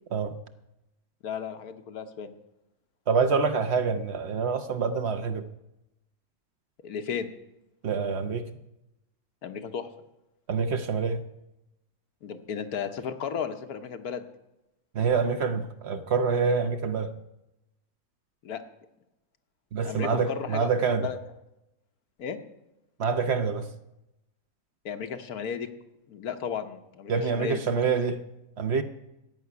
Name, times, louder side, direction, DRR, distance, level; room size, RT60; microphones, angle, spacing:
voice 1, 1.2-2.3 6.8-7.3 9.4-9.9 12.2-14.3 18.4-18.6 19.8-21.2 22.2-22.4 24.8-25.7 26.1-27.8, left 7 dB, 90° left, 1.5 m, -34 dB
voice 2, 3.1-5.5 7.8-8.5 10.5-11.2 14.9-17.1 19.7-21.1 23.0-23.7 27.1-28.2 28.6-28.8, right 5 dB, 55° right, 0.9 m, -26 dB
14.0 x 5.9 x 9.6 m
omnidirectional pair, 1.5 m